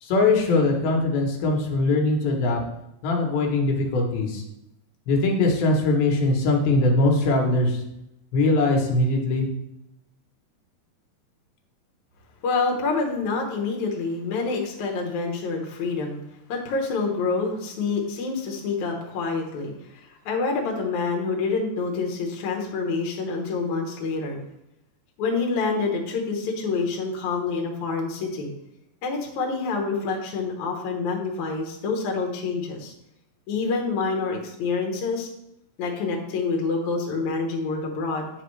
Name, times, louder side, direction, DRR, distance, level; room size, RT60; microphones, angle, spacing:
voice 1, 0.0-2.6 3.0-4.4 5.1-7.8 8.3-9.5, left 2 dB, 85° left, 0 dB, 2.9 m, -21 dB
voice 2, 12.4-16.2 16.5-24.4 25.2-28.5 29.0-32.9 33.5-35.3 35.8-38.3, left 4 dB, 65° left, 0 dB, 2.2 m, -27 dB
9.0 x 4.9 x 3.1 m, 0.84 s
omnidirectional pair, 4.1 m